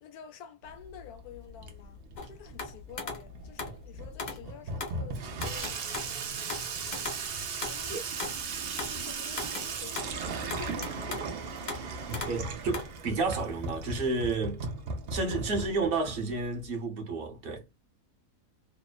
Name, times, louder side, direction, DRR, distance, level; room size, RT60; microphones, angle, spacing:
voice 1, 0.0-6.3 7.7-8.0 8.9-11.5, left 8 dB, 75° left, 1.1 m, -49 dB
Water tap faucet / Sink (filling or washing), 0.6-16.7, right 4 dB, 70° right, 0.5 m, -37 dB
sound 1, 2.2-3.8 4.2-4.4 4.8-5.0 5.4-6.2 6.5-8.4 8.8-9.1 9.4-10.2 10.5-11.3 11.7-11.9 12.1-12.4 12.7-12.9, left 3 dB, 50° left, 0.5 m, -38 dB
voice 2, 12.1-14.6 15.1-17.6, right 3 dB, 45° right, 0.9 m, -31 dB
2.9 x 2.0 x 2.3 m
omnidirectional pair, 1.6 m